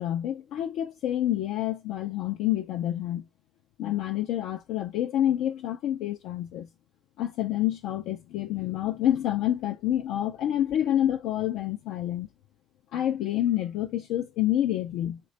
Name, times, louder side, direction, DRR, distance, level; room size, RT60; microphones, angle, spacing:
voice 1, 0.0-3.3 3.8-6.7 7.2-12.3 12.9-15.2, left 12 dB, 85° left, 0.3 m, -28 dB
3.2 x 2.2 x 3.8 m
supercardioid pair, 75°, 0 cm